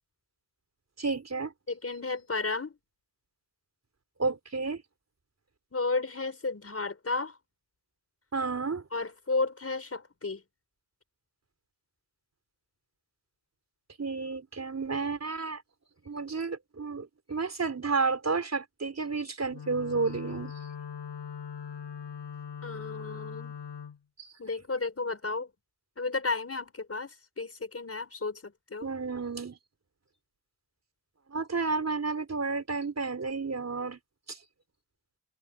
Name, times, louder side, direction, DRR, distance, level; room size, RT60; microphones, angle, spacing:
voice 1, 1.0-1.5 4.2-4.8 8.3-8.8 14.0-15.6 16.0-20.5 24.2-24.3 28.8-29.6 31.3-34.0 34.3-34.4, right 4 dB, 35° right, 4.8 m, -31 dB
voice 2, 1.7-2.8 5.7-7.4 8.9-10.4 22.6-23.5 24.4-25.5 26.0-28.9, left 3 dB, 30° left, 5.3 m, -33 dB
Wind instrument woodwind instrument, 19.5-24.0, left 7 dB, 60° left, 6.5 m, -41 dB
cardioid pair, 85°, 46 cm